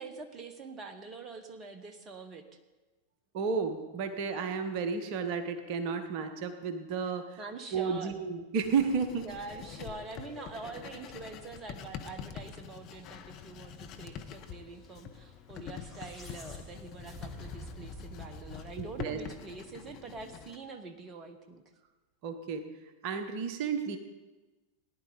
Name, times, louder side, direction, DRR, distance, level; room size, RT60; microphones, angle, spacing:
voice 1, 0.0-2.4 7.4-8.1 9.1-21.6, right 4 dB, 25° right, 7 dB, 1.1 m, -45 dB
voice 2, 3.3-7.4 7.7-9.3 18.8-19.2 22.2-22.7 23.0-24.0, right 5 dB, 45° right, 8 dB, 1.1 m, -32 dB
Writing, 8.6-20.6, left 8 dB, 40° left, 1.1 m, -46 dB
sound 1, 15.5-19.9, left 1 dB, 5° left, 2.8 m, -49 dB
18.5 x 10.5 x 4.0 m, 1.2 s
figure-of-eight pair, 90°, 0 cm